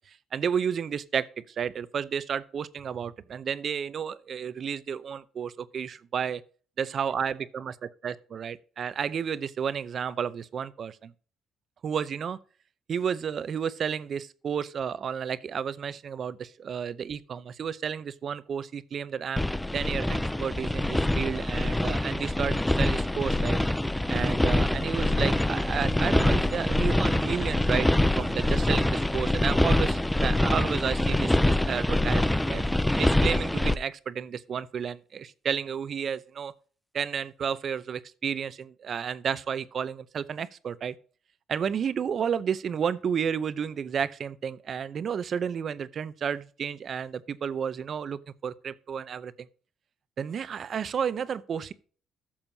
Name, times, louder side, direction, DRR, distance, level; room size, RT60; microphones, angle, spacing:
voice 1, 0.3-6.4 6.8-7.7 8.0-11.1 11.8-12.4 12.9-19.5 19.7-23.6 24.1-32.6 32.9-36.5 36.9-40.9 41.5-49.3 50.2-51.7, right 7 dB, 45° right, 0.6 m, -31 dB
sound 1, 19.4-33.7, left 1 dB, 5° left, 0.4 m, -25 dB
13.5 x 7.2 x 2.7 m
cardioid pair, 125°, 0 cm